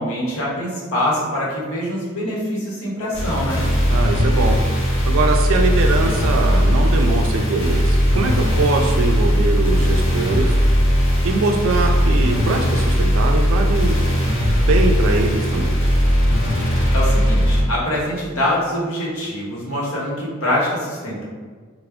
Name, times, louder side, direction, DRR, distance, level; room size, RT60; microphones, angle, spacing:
voice 1, 0.0-3.6 16.9-21.2, left 1 dB, 80° left, -5 dB, 1.0 m, -24 dB
sound 1, 3.1-17.6, equal, 60° left, 0.7 m, -18 dB
voice 2, 3.9-4.6 5.1-10.6 11.2-14.0 14.7-15.8, right 3 dB, 65° right, 2 dB, 0.3 m, -22 dB
3.3 x 2.1 x 3.5 m, 1.5 s
head